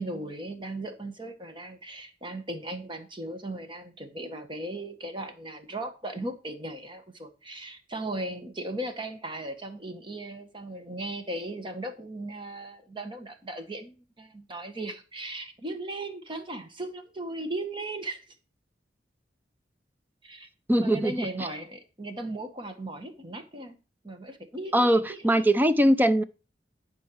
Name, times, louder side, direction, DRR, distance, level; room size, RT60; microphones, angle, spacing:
voice 1, 0.0-18.2 20.2-20.5 20.8-23.8 24.0-25.4, right 1 dB, 30° right, 1.5 m, -37 dB
voice 2, 20.7-21.5 24.7-26.2, right 1 dB, 10° right, 0.6 m, -22 dB
12.0 x 4.6 x 6.3 m
head